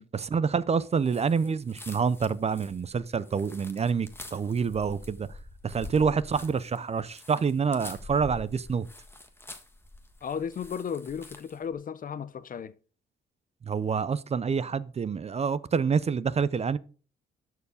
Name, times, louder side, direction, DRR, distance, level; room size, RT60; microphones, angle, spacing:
voice 1, 0.1-5.3 5.6-8.9 13.6-16.8, right 5 dB, 30° right, 0.5 m, -27 dB
sound 1, 1.0-11.6, left 2 dB, 10° left, 1.5 m, -46 dB
voice 2, 10.2-12.7, left 7 dB, 45° left, 0.7 m, -34 dB
12.5 x 4.7 x 4.9 m
cardioid pair, 90°, 20 cm